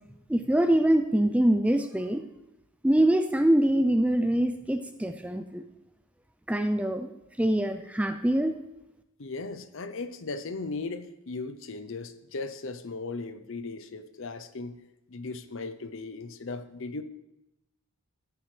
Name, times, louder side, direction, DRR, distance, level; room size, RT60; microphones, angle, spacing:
voice 1, 0.3-2.2 2.8-5.6 6.5-7.1 7.4-8.5, right 1 dB, 5° right, 8 dB, 0.4 m, -24 dB
voice 2, 9.2-14.8 15.1-17.0, left 3 dB, 60° left, 11 dB, 0.6 m, -37 dB
13.0 x 9.7 x 3.3 m, 0.88 s
head